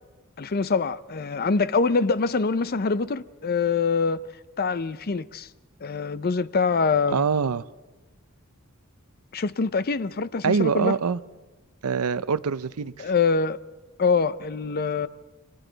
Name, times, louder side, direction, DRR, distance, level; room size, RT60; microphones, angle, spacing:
voice 1, 0.4-4.2 4.6-5.5 5.8-7.3 9.3-10.9 13.0-13.6 14.0-15.1, left 4 dB, 45° left, 0.5 m, -24 dB
voice 2, 7.1-7.6 10.4-11.2 11.8-13.1, right 5 dB, 80° right, 0.6 m, -24 dB
29.5 x 24.0 x 4.0 m
head